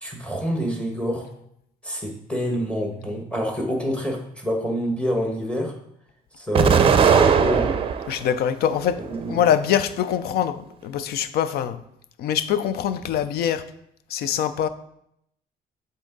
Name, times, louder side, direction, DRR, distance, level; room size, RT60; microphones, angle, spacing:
voice 1, 0.0-1.3 1.8-5.7 6.4-7.8 9.0-9.4, equal, 5° left, 1 dB, 1.4 m, -27 dB
Explosion, 6.5-8.2 8.7-9.6, right 7 dB, 35° right, 0.5 m, -19 dB
voice 2, 8.1-9.0 9.3-11.8 12.2-13.6 14.1-14.7, left 9 dB, 70° left, 13 dB, 0.5 m, -23 dB
7.5 x 3.8 x 3.9 m, 0.75 s
cardioid pair, 110°, 17 cm